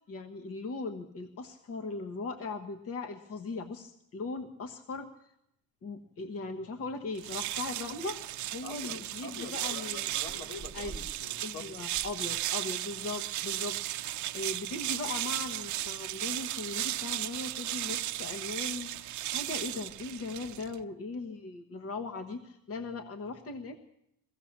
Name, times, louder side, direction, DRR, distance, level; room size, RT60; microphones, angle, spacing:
voice 1, 0.0-5.3 5.8-8.2 8.5-10.1 10.7-10.9 11.4-23.8, left 3 dB, 40° left, 7 dB, 1.3 m, -39 dB
sound 1, 7.1-20.8, right 14 dB, 55° right, 0.7 m, -35 dB
Chewing mastication, 7.5-7.8 8.4-8.5 8.8-9.0 9.4-9.5 9.8-11.3 11.7-12.9 13.3-13.4, right 5 dB, 10° right, 1.3 m, -49 dB
voice 2, 8.6-9.0 9.2-11.7, left 5 dB, 75° left, 3 dB, 3.3 m, -45 dB
22.0 x 16.5 x 7.3 m, 0.78 s
cardioid pair, 165°, 36 cm